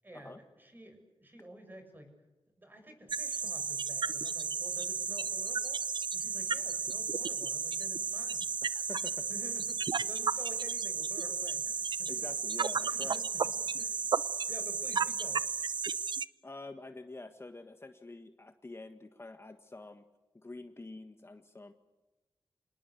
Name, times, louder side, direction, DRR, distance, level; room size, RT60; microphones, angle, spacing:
voice 1, 0.0-2.1 2.6-5.8 6.1-8.4 9.3-12.3 12.7-13.4 13.8-14.0 14.5-15.4, right 1 dB, 20° right, 6 dB, 7.1 m, -51 dB
sound 1, 3.1-16.3, right 5 dB, 60° right, 0.7 m, -33 dB
voice 2, 8.6-9.3 12.1-13.2 16.4-20.0 20.4-21.7, left 2 dB, 30° left, 7 dB, 1.5 m, -47 dB
27.0 x 19.5 x 8.4 m, 1.1 s
wide cardioid pair, 85°, 9 cm